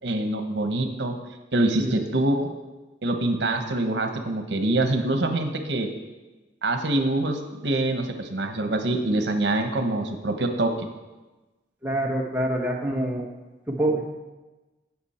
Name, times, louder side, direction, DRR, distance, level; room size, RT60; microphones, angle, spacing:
voice 1, 0.0-1.1 1.5-2.5 3.0-5.9 6.6-10.9, right 2 dB, 85° right, 6 dB, 1.0 m, -25 dB
voice 2, 11.8-13.3 13.7-14.0, right 1 dB, 10° right, -2 dB, 1.3 m, -26 dB
17.0 x 6.1 x 4.3 m, 1.2 s
head